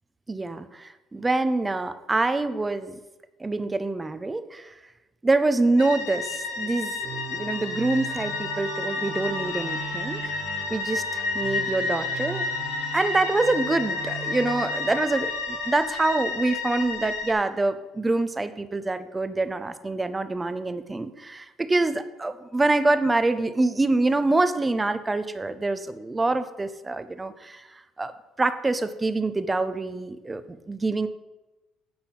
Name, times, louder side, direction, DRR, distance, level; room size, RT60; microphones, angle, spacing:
voice 1, 0.3-3.0 3.4-4.7 5.2-10.4 10.7-12.4 12.9-27.6 28.0-28.1 28.4-31.1, right 2 dB, 15° right, 11 dB, 0.6 m, -26 dB
sound 1, 5.8-17.3, left 4 dB, 85° left, 1.5 m, -31 dB
Musical instrument, 7.0-16.2, right 7 dB, 75° right, 0.9 m, -38 dB
8.6 x 5.9 x 5.8 m, 1.1 s
cardioid pair, 125°, 0 cm